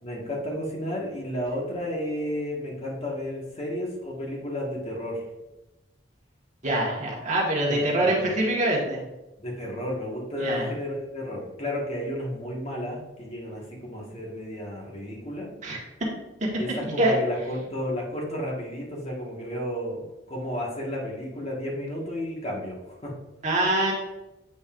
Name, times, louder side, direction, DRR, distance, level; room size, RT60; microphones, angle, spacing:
voice 1, 0.0-5.2 7.7-8.3 9.4-15.5 16.6-23.2, left 1 dB, 35° left, -2 dB, 1.5 m, -32 dB
voice 2, 6.6-9.0 10.4-10.7 15.6-15.8 16.4-16.5 16.8-17.2 23.4-23.9, right 1 dB, 40° right, -2 dB, 1.4 m, -24 dB
8.1 x 5.3 x 2.5 m, 1.0 s
head